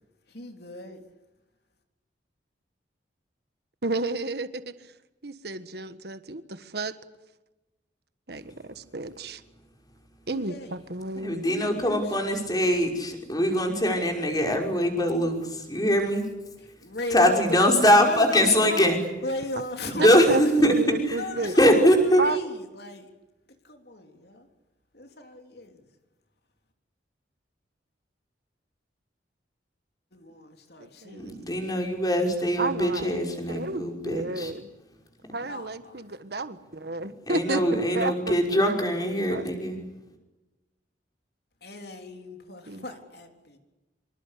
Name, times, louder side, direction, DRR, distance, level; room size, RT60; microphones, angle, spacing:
voice 1, 0.3-1.0 10.3-10.7 11.4-12.4 16.8-18.9 19.2-23.1 23.6-24.5 24.9-25.9 30.1-31.4 35.4-36.0 41.6-43.6, left 2 dB, 55° left, 5 dB, 3.7 m, -37 dB
voice 2, 3.8-4.9 5.2-6.9 8.3-9.4 10.3-11.4 20.0-21.6 22.2-22.4 30.8-31.3 32.6-34.7 35.3-38.4 38.7-39.0 39.3-39.5 42.7-42.8, right 2 dB, 60° right, 11 dB, 1.5 m, -32 dB
voice 3, 11.2-16.3 17.1-19.0 19.9-20.7 21.6-22.2 31.2-34.5 37.3-39.8, equal, 20° left, 3 dB, 5.7 m, -22 dB
26.5 x 25.5 x 8.5 m, 1.1 s
head